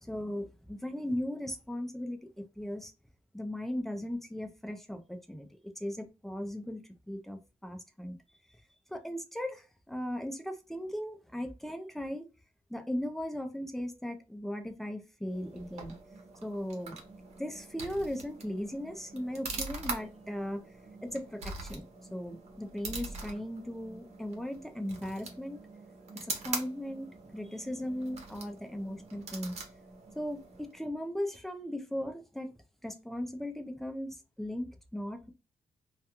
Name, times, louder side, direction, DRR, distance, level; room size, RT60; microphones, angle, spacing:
voice 1, 0.0-2.9 3.3-8.2 8.9-12.2 12.7-15.9 16.4-17.0 17.4-20.6 21.0-21.8 22.1-25.6 26.4-29.5 30.2-32.5 32.8-35.3, equal, ahead, 0.4 m, -37 dB
sound 1, 15.3-30.8, right 3 dB, 65° right, 0.8 m, -43 dB
2.3 x 2.2 x 2.8 m
wide cardioid pair, 150°, 12 cm